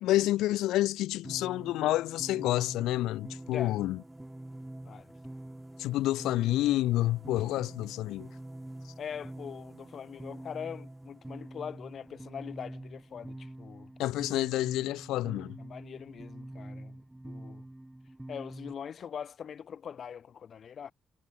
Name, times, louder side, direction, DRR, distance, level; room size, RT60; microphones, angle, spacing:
voice 1, 0.0-4.0 5.8-8.3 14.0-15.6, left 15 dB, 90° left, 0.4 m, -29 dB
sound 1, 1.2-18.7, right 1 dB, 10° right, 5.8 m, -46 dB
voice 2, 9.0-13.9 15.6-17.0 17.2-17.7 18.3-20.9, left 7 dB, 55° left, 2.0 m, -42 dB
cardioid pair, 90°, 0 cm